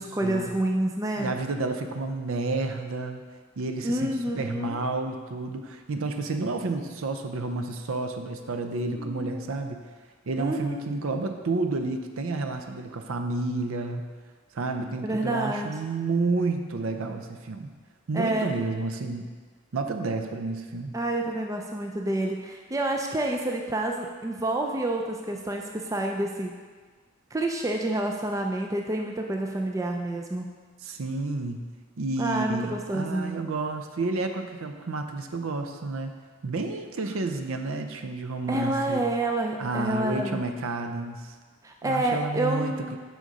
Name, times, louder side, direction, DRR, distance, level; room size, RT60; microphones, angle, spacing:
voice 1, 0.0-1.3 3.8-4.8 9.0-9.5 10.4-10.9 15.0-15.7 18.1-18.5 20.9-26.5 27.3-30.5 32.2-33.4 38.5-40.4 41.6-43.0, right 1 dB, 15° right, 2 dB, 0.3 m, -28 dB
voice 2, 1.2-3.3 3.6-9.8 10.3-14.0 14.5-17.7 18.1-19.3 19.7-21.0 30.8-31.6 32.0-36.1 36.4-39.0 39.6-41.3 41.8-43.0, right 3 dB, 70° right, 6 dB, 0.5 m, -30 dB
6.3 x 5.1 x 4.0 m, 1.5 s
head